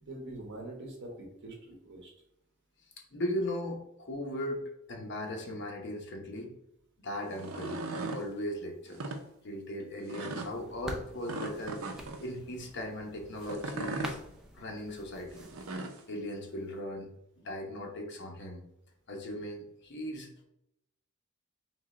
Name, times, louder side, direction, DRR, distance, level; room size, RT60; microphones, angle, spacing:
voice 1, 0.0-2.1, right 1 dB, 55° right, 1 dB, 1.2 m, -44 dB
voice 2, 3.1-6.5 7.0-9.0 9.4-14.2 14.5-17.1 17.4-18.6 19.1-20.4, left 1 dB, 55° left, 1 dB, 1.0 m, -38 dB
sound 1, 7.3-8.2 8.9-9.2 10.1-10.5 11.3-12.2 13.4-14.2 15.4-16.0, right 2 dB, 80° right, 0.6 m, -37 dB
sound 2, 10.4-15.8, equal, 5° right, 0.5 m, -47 dB
3.7 x 3.2 x 3.8 m, 0.80 s
head